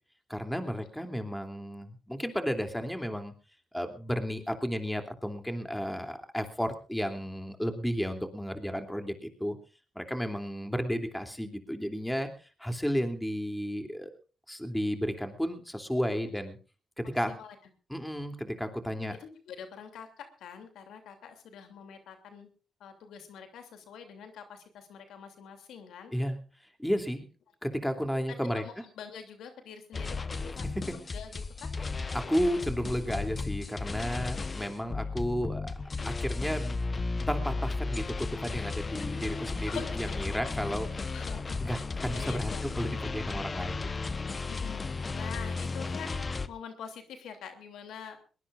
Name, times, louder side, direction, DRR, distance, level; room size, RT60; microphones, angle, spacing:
voice 1, 0.3-3.3 3.7-9.6 9.9-14.1 14.5-16.6 17.0-17.3 17.9-19.2 26.1-26.4 26.8-27.3 27.6-28.6 30.8-31.0 32.1-35.7 36.0-36.8 37.3-41.1 41.6-43.9, equal, 5° left, 6 dB, 2.9 m, -33 dB
voice 2, 19.1-22.5 22.8-26.1 28.5-30.6 31.1-31.7 34.4-34.5 39.6-40.3 41.1-41.8 42.1-42.6 44.5-44.8 45.1-48.2, left 7 dB, 85° left, 6 dB, 2.9 m, -45 dB
sound 1, 29.9-46.5, left 4 dB, 35° left, 1.0 m, -34 dB
21.5 x 20.0 x 2.5 m, 0.35 s
cardioid pair, 65°, 0 cm